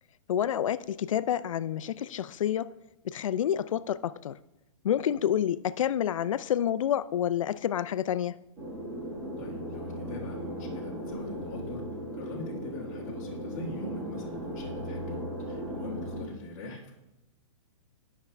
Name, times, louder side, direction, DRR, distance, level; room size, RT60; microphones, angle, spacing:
voice 1, 0.3-2.7 3.0-4.4 4.8-8.4, left 10 dB, 75° left, 0.4 m, -28 dB
sound 1, 8.6-16.2, equal, 15° right, 1.4 m, -37 dB
voice 2, 9.4-11.8 12.1-16.9, left 2 dB, 30° left, 1.4 m, -42 dB
10.5 x 5.9 x 3.3 m
hypercardioid pair, 180°, 17 cm